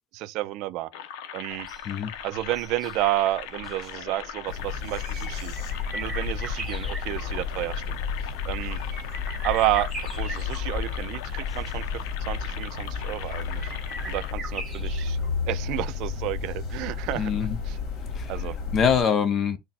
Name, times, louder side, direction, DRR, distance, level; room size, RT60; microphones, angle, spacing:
voice 1, 0.1-0.9 1.3-1.7 2.2-5.5 5.9-8.0 8.5-8.8 9.4-9.9 10.1-11.8 12.3-13.7 14.1-17.3 17.7-17.8 18.3-18.6, right 16 dB, 65° right, 0.3 m, -30 dB
sound 1, 0.9-14.3, left 10 dB, 85° left, 0.6 m, -40 dB
sound 2, 1.5-17.5 17.8-17.9, right 2 dB, 5° right, 1.4 m, -42 dB
sound 3, 4.5-19.0, left 5 dB, 60° left, 1.5 m, -32 dB
voice 2, 17.1-17.6 18.1-18.4 18.7-19.6, left 7 dB, 35° left, 0.8 m, -24 dB
4.0 x 2.2 x 4.1 m
cardioid pair, 145°, 0 cm